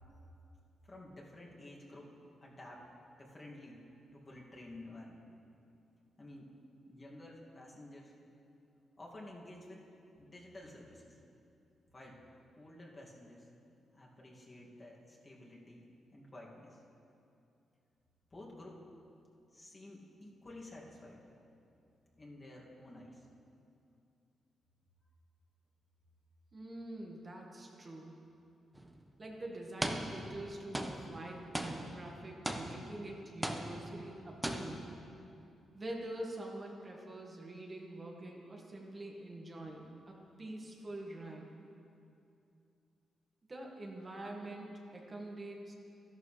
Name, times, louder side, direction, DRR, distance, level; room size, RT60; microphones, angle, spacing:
voice 1, 0.8-2.1 2.4-2.9 3.2-3.8 4.1-5.2 6.2-6.5 6.9-8.1 9.0-9.9 10.2-11.2 11.9-12.2 12.6-13.5 13.9-16.8 18.3-18.8 19.5-21.2 22.2-23.3, left 1 dB, 35° left, -4 dB, 2.3 m, -52 dB
voice 2, 26.5-28.2 29.2-34.9 35.7-41.5 43.5-45.7, right 1 dB, 35° right, -1 dB, 1.7 m, -45 dB
sound 1, 28.7-28.9 29.8-30.5 30.7-33.1 33.4-34.1 34.4-35.0, right 1 dB, 10° right, 1.0 m, -39 dB
13.0 x 11.5 x 3.3 m, 2.6 s
supercardioid pair, 60°, 0 cm